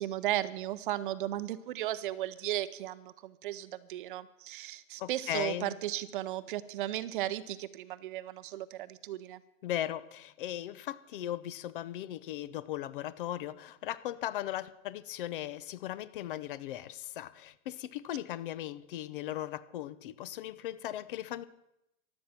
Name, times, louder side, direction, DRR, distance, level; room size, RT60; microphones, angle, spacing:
voice 1, 0.0-9.4, right 14 dB, 40° right, 15 dB, 0.7 m, -35 dB
voice 2, 5.0-5.8 9.6-21.5, left 12 dB, 40° left, 16 dB, 0.7 m, -38 dB
15.5 x 11.5 x 5.9 m, 0.86 s
hypercardioid pair, 155°, 41 cm